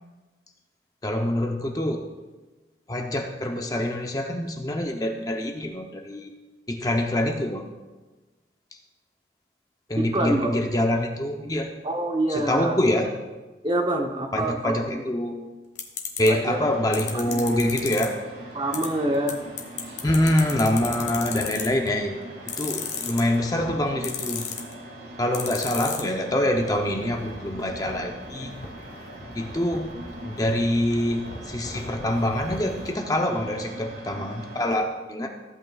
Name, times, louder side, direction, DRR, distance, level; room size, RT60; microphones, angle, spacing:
voice 1, 1.0-2.0 2.9-6.3 6.7-7.7 9.9-11.7 12.3-13.1 14.3-15.4 16.2-18.2 20.0-22.2 22.6-24.5 25.2-28.5 29.3-29.9 30.2-35.3, left 1 dB, 20° left, 3 dB, 0.6 m, -25 dB
voice 2, 10.0-10.6 11.8-12.7 13.6-15.0 16.3-16.6 17.1-17.5 18.5-19.4, right 1 dB, 25° right, 3 dB, 0.8 m, -26 dB
sound 1, 15.8-16.3 16.9-18.0 18.7-18.9 19.3-19.4 19.6-21.9 22.5-23.4 24.0-24.7 25.3-26.0, left 10 dB, 75° left, 1.3 m, -30 dB
sound 2, 16.4-34.7, right 1 dB, 70° right, 2.1 m, -41 dB
sound 3, 20.0-21.5 23.2-23.9 26.5-32.9, left 1 dB, 55° left, 1.7 m, -41 dB
15.0 x 8.3 x 2.3 m, 1.2 s
head